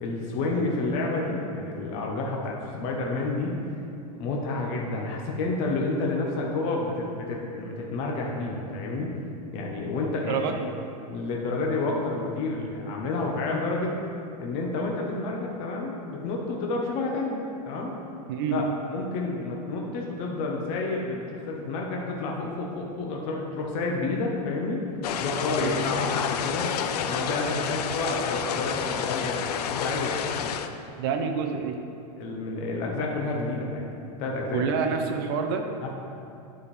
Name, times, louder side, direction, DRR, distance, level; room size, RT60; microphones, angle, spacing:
voice 1, 0.0-3.5 4.2-9.1 9.5-10.4 11.1-14.0 14.4-17.9 18.5-18.6 18.9-24.8 25.2-26.7 27.1-30.5 32.2-33.9 34.2-34.7 35.8-35.9, left 3 dB, 25° left, -1 dB, 0.7 m, -30 dB
voice 2, 10.3-10.7 18.3-18.6 25.6-25.8 31.0-31.8 34.5-35.6, right 6 dB, 35° right, 5 dB, 0.6 m, -27 dB
sound 1, 25.0-30.7, left 8 dB, 85° left, 0.5 m, -29 dB
9.8 x 5.1 x 4.2 m, 2.7 s
supercardioid pair, 180°, 20 cm